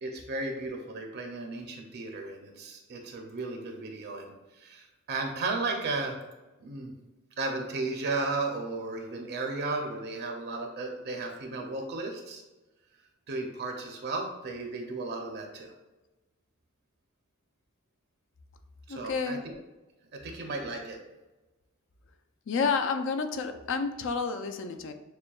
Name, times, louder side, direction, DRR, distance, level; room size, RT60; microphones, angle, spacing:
voice 1, 0.0-6.2 6.6-6.9 7.4-12.4 13.3-15.7 18.9-19.5 20.1-21.0, right 3 dB, 50° right, 2 dB, 0.6 m, -34 dB
voice 2, 18.9-19.6 22.5-24.9, left 5 dB, 60° left, 7 dB, 0.4 m, -30 dB
6.6 x 2.2 x 2.3 m, 1.1 s
head